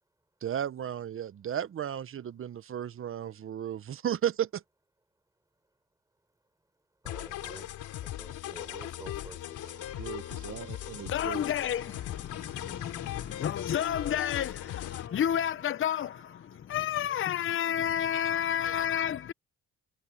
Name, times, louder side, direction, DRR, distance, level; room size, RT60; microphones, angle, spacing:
voice 1, 0.4-4.6 10.0-11.4, right 10 dB, 45° right, 0.8 m, -34 dB
sound 1, 7.0-15.1, left 13 dB, 85° left, 3.3 m, -39 dB
voice 2, 7.0-7.8 8.2-9.8, right 2 dB, 10° right, 4.5 m, -49 dB
Engine / Tools, 9.5-17.0, right 13 dB, 80° right, 4.1 m, -59 dB
voice 3, 11.1-19.3, left 9 dB, 45° left, 0.6 m, -31 dB
cardioid pair, 90°, 30 cm